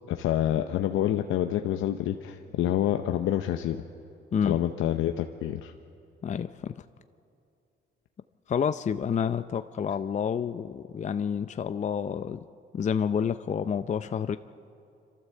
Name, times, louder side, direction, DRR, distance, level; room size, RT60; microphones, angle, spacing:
voice 1, 0.1-3.8 4.4-5.7, left 12 dB, 85° left, 7 dB, 0.7 m, -27 dB
voice 2, 6.2-6.7 8.5-12.4 12.7-14.4, left 7 dB, 35° left, 11 dB, 0.5 m, -29 dB
27.0 x 13.0 x 7.6 m, 2.6 s
cardioid pair, 90°, 20 cm